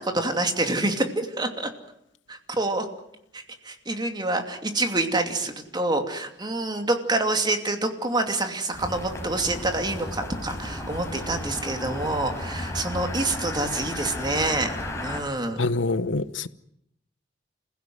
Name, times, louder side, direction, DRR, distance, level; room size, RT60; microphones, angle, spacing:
voice 1, 0.0-1.7 2.3-2.9 3.3-14.7 15.0-15.6, right 2 dB, 25° right, 2.7 m, -27 dB
sound 1, 8.7-15.2, left 1 dB, 15° left, 5.4 m, -34 dB
voice 2, 15.6-16.5, left 3 dB, 85° left, 1.0 m, -25 dB
29.5 x 16.0 x 9.5 m
head